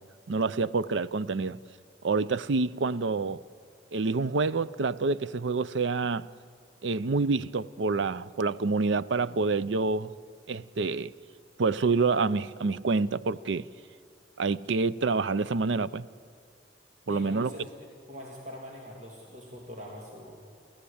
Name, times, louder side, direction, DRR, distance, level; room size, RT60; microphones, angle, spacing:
voice 1, 0.3-1.6 2.0-3.4 3.9-6.3 6.8-10.1 10.5-11.1 11.6-13.7 14.4-16.0 17.1-17.5, right 4 dB, 80° right, 0.5 m, -27 dB
voice 2, 17.1-20.4, left 1 dB, 40° right, 2.8 m, -43 dB
29.0 x 14.0 x 8.6 m
head